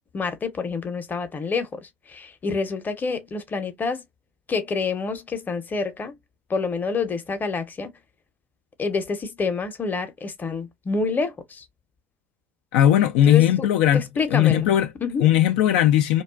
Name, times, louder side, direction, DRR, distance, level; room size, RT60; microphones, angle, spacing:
voice 1, 0.1-4.0 4.5-6.1 6.5-8.0 8.8-11.6 13.2-13.7 13.9-14.7 15.0-15.3, left 4 dB, 25° left, 0.7 m, -27 dB
voice 2, 12.7-14.0 14.3-14.9 15.2-16.2, left 11 dB, 65° left, 0.3 m, -18 dB
2.4 x 2.3 x 2.2 m
hypercardioid pair, 75°, 7 cm